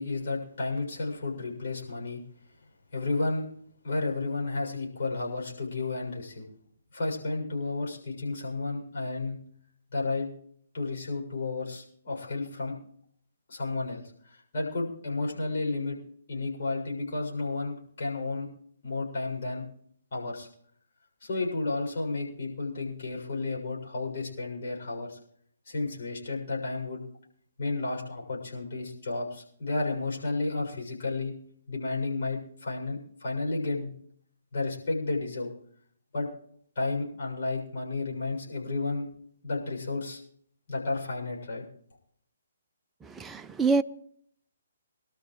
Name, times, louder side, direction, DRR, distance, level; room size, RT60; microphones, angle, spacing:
voice 1, 0.0-2.2 2.9-3.5 3.8-6.5 6.9-9.4 9.9-10.3 10.7-12.8 13.5-16.0 16.3-18.5 18.8-19.6 20.1-20.5 21.2-25.2 25.7-27.0 27.6-31.3 31.7-33.9 34.5-35.5 36.1-36.3 36.8-39.1 39.4-40.2 40.7-41.6, left 3 dB, 50° left, 7.1 m, -32 dB
voice 2, 43.2-43.8, right 4 dB, 10° right, 0.5 m, -25 dB
25.0 x 13.0 x 3.2 m
figure-of-eight pair, 135°, 0 cm